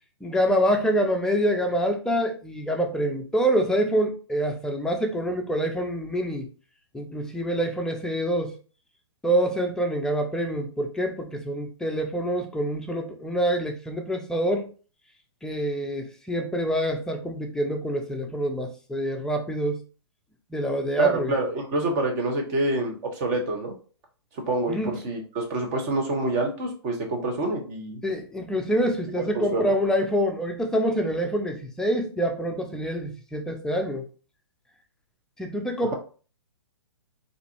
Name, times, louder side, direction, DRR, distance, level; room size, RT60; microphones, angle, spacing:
voice 1, 0.2-6.5 6.9-8.5 9.2-14.7 15.4-19.8 20.5-21.3 24.7-25.0 28.0-34.1 35.4-35.9, equal, 5° left, 0.4 m, -26 dB
voice 2, 21.0-23.7 24.3-28.0 29.2-29.7, right 2 dB, 35° right, 1.1 m, -27 dB
3.9 x 2.6 x 2.9 m
hypercardioid pair, 130°, 15 cm